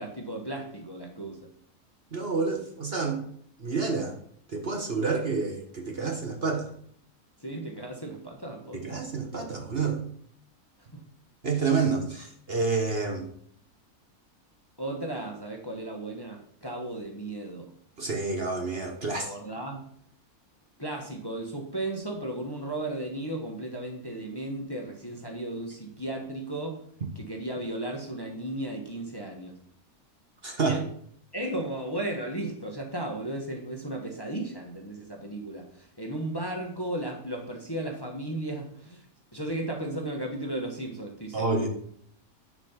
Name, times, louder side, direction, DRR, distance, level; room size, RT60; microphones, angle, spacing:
voice 1, 0.0-1.5 7.4-9.0 10.9-11.0 14.8-17.7 19.1-19.9 20.8-26.8 27.1-29.6 30.6-30.9 31.3-41.7, right 1 dB, 15° left, 1 dB, 1.3 m, -35 dB
voice 2, 2.1-3.2 3.6-4.2 4.5-6.7 8.7-10.0 11.4-13.3 18.0-19.3 30.4-30.8 41.3-41.7, right 4 dB, 40° right, 2 dB, 1.4 m, -28 dB
10.5 x 4.9 x 5.8 m, 0.63 s
omnidirectional pair, 1.6 m